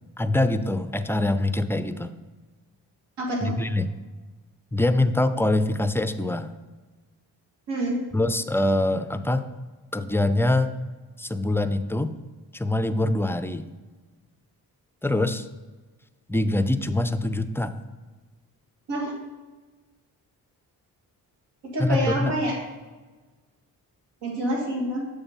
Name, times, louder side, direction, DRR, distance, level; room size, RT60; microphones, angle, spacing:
voice 1, 0.2-2.1 3.4-3.9 4.7-6.5 8.1-9.5 9.9-10.7 11.2-12.1 12.5-13.7 15.0-15.5 16.3-17.7 21.8-22.3, left 1 dB, 5° left, 11 dB, 0.3 m, -24 dB
voice 2, 3.2-3.5 7.7-8.0 18.9-19.1 21.6-22.5 24.2-25.0, right 1 dB, 80° right, 0 dB, 1.5 m, -27 dB
7.1 x 3.4 x 5.5 m, 1.3 s
supercardioid pair, 55°, 41 cm